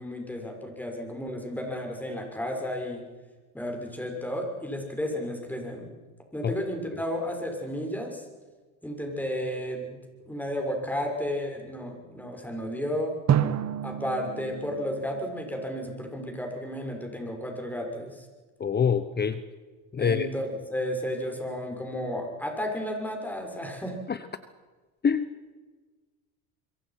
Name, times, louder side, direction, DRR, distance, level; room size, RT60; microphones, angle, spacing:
voice 1, 0.0-3.0 3.5-5.9 6.3-8.2 8.8-10.0 10.3-13.1 13.8-18.2 20.0-24.0, equal, 5° left, 2 dB, 6.4 m, -33 dB
Drum, 13.3-16.2, right 9 dB, 40° right, 1.6 m, -29 dB
voice 2, 18.6-19.4 19.9-20.3 24.1-24.2 25.0-25.3, left 6 dB, 25° left, 12 dB, 1.1 m, -25 dB
26.0 x 23.0 x 6.0 m, 1.3 s
supercardioid pair, 100°, 42 cm